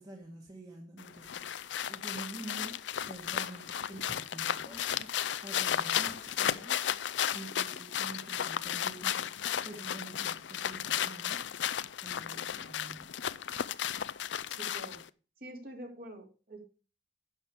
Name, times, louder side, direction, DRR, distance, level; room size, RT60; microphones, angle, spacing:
voice 1, 0.0-2.8 3.1-6.8 7.3-11.4 12.0-13.1, right 2 dB, 20° right, 0 dB, 1.6 m, -47 dB
sound 1, 1.0-15.1, left 9 dB, 90° left, 0.5 m, -34 dB
voice 2, 14.5-15.0 15.4-16.6, right 1 dB, 55° right, 1 dB, 3.3 m, -46 dB
11.0 x 6.9 x 4.7 m, 0.35 s
head